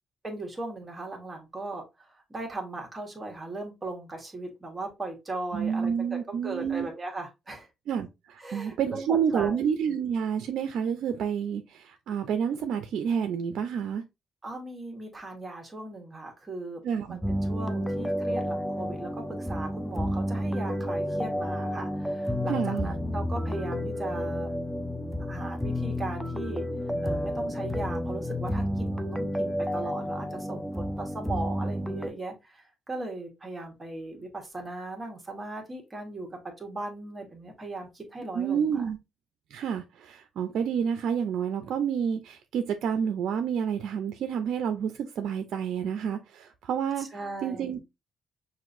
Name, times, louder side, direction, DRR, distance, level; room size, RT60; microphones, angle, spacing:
voice 1, 0.2-7.7 8.4-9.6 14.4-16.8 17.1-24.5 25.2-26.6 27.0-36.3 36.6-38.8 47.0-47.8, right 2 dB, 25° right, 1.4 m, -38 dB
voice 2, 5.5-6.9 7.9-14.0 16.8-17.2 22.5-22.9 38.3-39.0 39.5-47.1 47.4-47.8, right 7 dB, 75° right, 0.4 m, -29 dB
sound 1, 17.2-32.1, equal, ahead, 0.5 m, -31 dB
5.8 x 2.6 x 2.5 m
cardioid pair, 90°, 0 cm